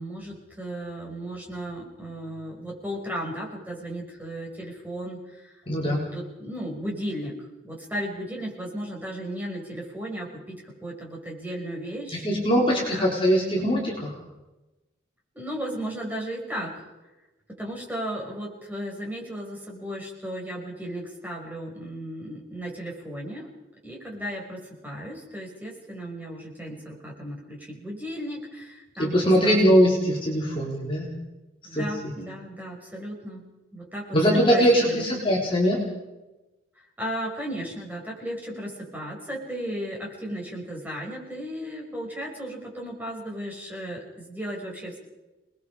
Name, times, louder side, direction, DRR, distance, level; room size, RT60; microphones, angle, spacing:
voice 1, 0.0-5.5 5.8-13.1 15.3-16.7 17.6-23.5 23.8-29.7 31.6-33.4 33.7-35.0 37.0-45.0, equal, 10° right, -2 dB, 5.6 m, -35 dB
voice 2, 5.7-6.0 12.2-14.1 29.1-31.1 31.7-31.8 34.1-35.8, equal, 25° left, -3 dB, 4.1 m, -21 dB
29.0 x 20.5 x 4.9 m, 1.1 s
head